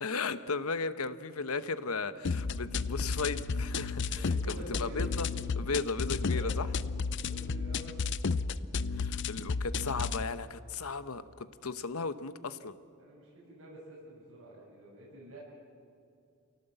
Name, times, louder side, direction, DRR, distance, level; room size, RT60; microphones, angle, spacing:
voice 1, 0.0-5.3 5.5-6.7 8.9-12.7, left 4 dB, 85° left, 12 dB, 1.0 m, -36 dB
sound 1, 2.2-10.2, left 4 dB, 55° left, 0.6 m, -33 dB
voice 2, 4.1-5.1 6.3-6.5 7.2-8.0 13.0-15.4, right 1 dB, 65° right, -7 dB, 6.9 m, -48 dB
28.0 x 18.0 x 7.9 m, 2.5 s
head